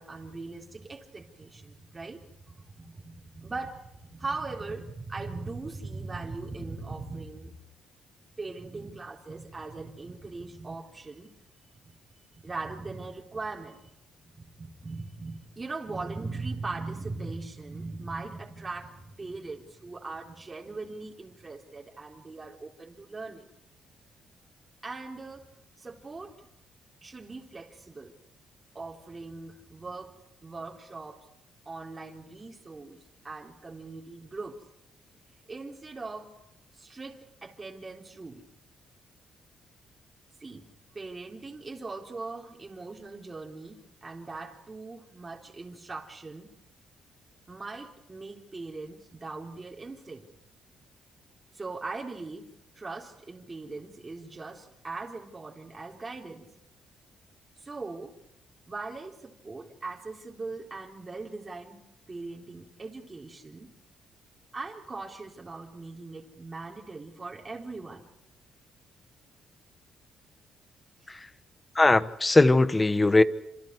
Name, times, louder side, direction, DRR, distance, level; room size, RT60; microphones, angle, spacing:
voice 1, 0.0-7.6 8.4-11.3 11.8-11.9 12.3-13.9 14.2-23.5 24.8-25.5 25.8-26.4 27.0-28.1 28.7-30.1 30.4-31.3 31.7-34.6 35.5-36.3 36.7-38.4 40.4-40.7 40.9-46.5 47.5-50.3 51.5-56.5 57.6-58.2 58.7-63.7 64.5-68.1 71.0-71.2, right 3 dB, 25° right, 4.0 m, -40 dB
voice 2, 71.7-73.2, left 2 dB, 20° left, 1.3 m, -20 dB
28.5 x 28.0 x 4.8 m
cardioid pair, 90°, 0 cm